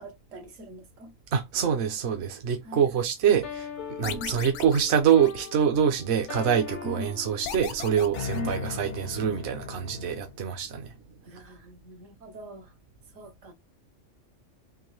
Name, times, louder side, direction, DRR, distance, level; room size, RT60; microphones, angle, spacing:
voice 1, 0.0-1.1 2.6-2.8 4.0-4.3 6.8-7.2 8.3-9.1 11.2-12.7 13.1-13.5, equal, 80° right, 1.3 m, -41 dB
voice 2, 1.3-10.9, right 8 dB, 60° right, 0.9 m, -25 dB
sound 1, 3.4-10.4, left 7 dB, 50° left, 0.6 m, -39 dB
sound 2, 4.0-6.0 7.4-9.2, left 8 dB, 75° left, 0.9 m, -39 dB
3.8 x 2.6 x 3.1 m
omnidirectional pair, 1.3 m